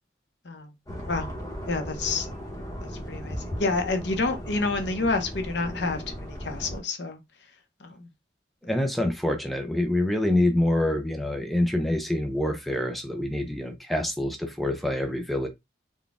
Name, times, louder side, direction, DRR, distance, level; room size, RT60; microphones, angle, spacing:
sound 1, 0.9-6.8, equal, 20° left, 0.9 m, -37 dB
voice 1, 1.7-2.3 2.8-7.2 7.8-8.1, left 3 dB, 65° left, 0.8 m, -29 dB
voice 2, 8.6-15.5, left 1 dB, ahead, 0.4 m, -26 dB
4.0 x 2.2 x 3.5 m
head